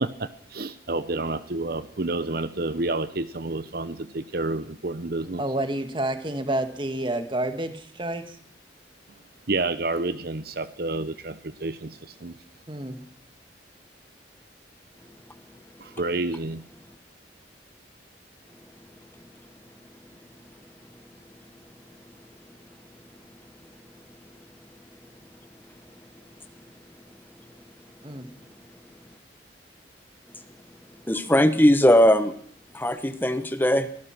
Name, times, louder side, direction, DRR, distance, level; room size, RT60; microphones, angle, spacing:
voice 1, 0.0-5.4 9.5-12.3 15.8-16.6, right 2 dB, 55° right, 13 dB, 1.0 m, -29 dB
voice 2, 5.4-8.4 12.7-13.0 28.0-28.3, right 1 dB, 25° right, 8 dB, 2.1 m, -29 dB
voice 3, 31.1-32.3 32.7-33.9, equal, 10° left, 10 dB, 1.2 m, -19 dB
24.0 x 17.5 x 6.2 m, 0.62 s
head